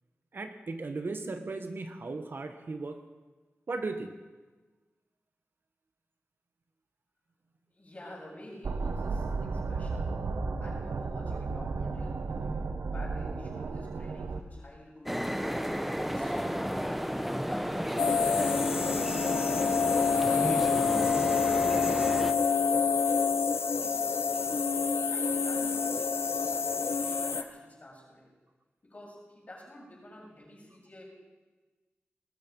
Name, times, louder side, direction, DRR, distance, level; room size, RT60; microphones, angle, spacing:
voice 1, 0.3-3.0 3.7-4.1, right 3 dB, 55° right, 7 dB, 1.2 m, -36 dB
voice 2, 7.7-10.2 10.6-15.2 15.8-20.5 20.9-22.7 23.7-24.5 25.1-28.3 28.8-31.0, left 1 dB, 35° left, -4 dB, 7.1 m, -50 dB
sound 1, 8.6-14.4, right 4 dB, 85° right, 1.1 m, -33 dB
sound 2, 15.1-22.3, equal, 5° right, 0.8 m, -32 dB
sound 3, 18.0-27.4, left 5 dB, 75° left, 0.9 m, -27 dB
20.0 x 13.5 x 5.4 m, 1.3 s
wide cardioid pair, 110°, 4 cm